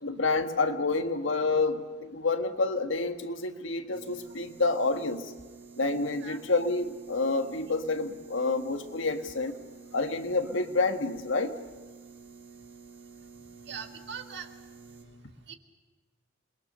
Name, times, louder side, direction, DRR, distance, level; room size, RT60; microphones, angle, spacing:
voice 1, 0.0-5.3 5.8-9.5 9.9-11.5, left 3 dB, 75° left, 7 dB, 1.6 m, -28 dB
sound 1, 3.9-15.0, right 4 dB, 85° right, 5.3 m, -50 dB
voice 2, 13.7-14.5 15.5-15.6, right 6 dB, 55° right, 5 dB, 1.9 m, -40 dB
28.0 x 21.5 x 6.7 m, 1.4 s
head